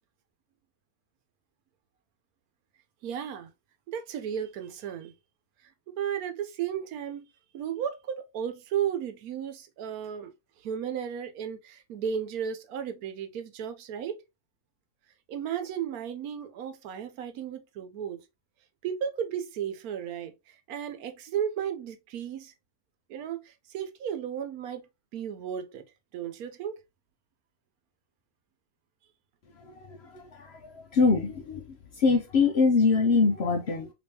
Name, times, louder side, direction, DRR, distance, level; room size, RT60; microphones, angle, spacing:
voice 1, 3.0-3.5 3.9-5.1 5.9-7.3 7.5-10.3 10.6-14.2 15.3-18.2 18.8-22.5 23.1-24.8 25.1-25.8 26.1-26.8, right 8 dB, 80° right, 1.1 m, -34 dB
voice 2, 30.1-30.6 30.9-31.6 32.0-33.9, left 4 dB, 60° left, 0.7 m, -23 dB
3.4 x 3.0 x 2.7 m
omnidirectional pair, 1.5 m